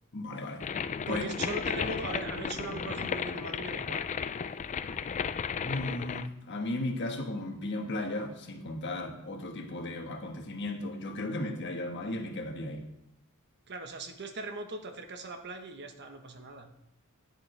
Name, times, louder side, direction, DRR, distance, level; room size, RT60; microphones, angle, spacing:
voice 1, 0.1-0.7 1.1-1.3 4.9-5.0 5.6-12.8, left 2 dB, 55° left, 4 dB, 1.3 m, -35 dB
sound 1, 0.6-6.3, left 6 dB, 35° left, 0.3 m, -34 dB
voice 2, 1.1-4.1 13.7-16.7, right 3 dB, 50° right, 6 dB, 1.0 m, -39 dB
11.0 x 9.9 x 3.3 m, 0.89 s
head